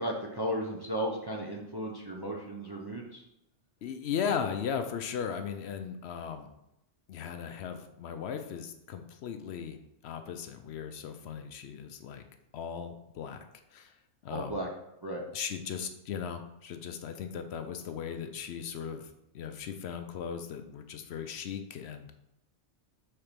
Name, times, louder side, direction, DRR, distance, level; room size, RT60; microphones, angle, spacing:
voice 1, 0.0-3.2 14.3-14.7 15.0-15.2, equal, 30° right, -1 dB, 0.5 m, -35 dB
voice 2, 3.8-6.5 7.1-9.8 10.0-12.2 12.5-13.4 13.7-13.9 14.2-14.6 15.3-22.1, left 7 dB, 70° left, 7 dB, 0.8 m, -37 dB
4.5 x 4.2 x 5.1 m, 0.84 s
omnidirectional pair, 1.2 m